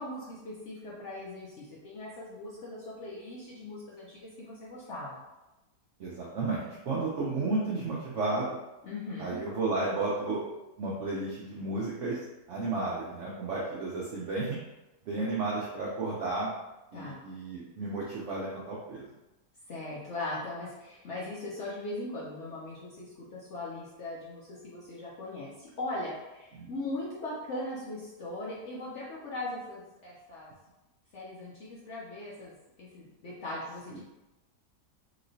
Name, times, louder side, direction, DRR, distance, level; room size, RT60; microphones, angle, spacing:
voice 1, 0.0-5.2 8.8-9.4 16.9-17.2 19.7-30.5 31.1-34.0, left 2 dB, 65° left, -6 dB, 0.7 m, -39 dB
voice 2, 6.0-8.6 9.2-10.4 10.8-12.2 12.5-14.6 15.0-16.5 16.9-19.1 26.5-26.7 33.9-34.0, right 3 dB, 75° right, -5 dB, 0.6 m, -32 dB
3.0 x 3.0 x 2.6 m, 1.0 s
omnidirectional pair, 1.8 m